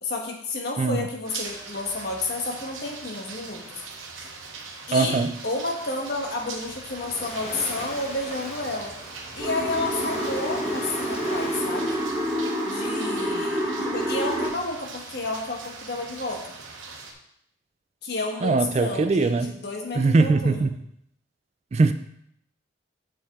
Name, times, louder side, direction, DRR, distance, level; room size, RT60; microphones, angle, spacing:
voice 1, 0.0-3.8 4.9-8.9 9.3-12.0 12.6-16.4 18.0-20.6, left 2 dB, 55° left, 1 dB, 1.3 m, -31 dB
sound 1, 1.2-17.1, right 4 dB, 90° right, 1.1 m, -41 dB
voice 2, 4.9-5.3 18.4-19.5 19.9-20.8 21.7-21.9, right 3 dB, 35° right, 11 dB, 0.3 m, -21 dB
Waves surf, 6.4-13.2, left 1 dB, 35° left, 1.2 m, -40 dB
sound 2, 9.4-14.5, equal, 10° right, 3.2 m, -28 dB
7.0 x 6.4 x 3.6 m, 0.72 s
head